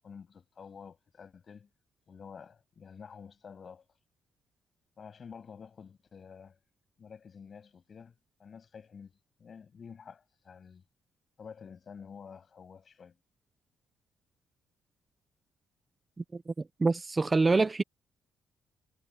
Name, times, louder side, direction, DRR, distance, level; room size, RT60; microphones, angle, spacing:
voice 1, 0.0-1.7 2.1-3.9 5.0-6.6 7.0-8.1 8.4-9.1 9.4-10.8 11.4-13.1, left 6 dB, 45° left, 8.0 m, -49 dB
voice 2, 16.8-17.8, right 3 dB, 25° right, 0.9 m, -25 dB
cardioid pair, 90°, 0 cm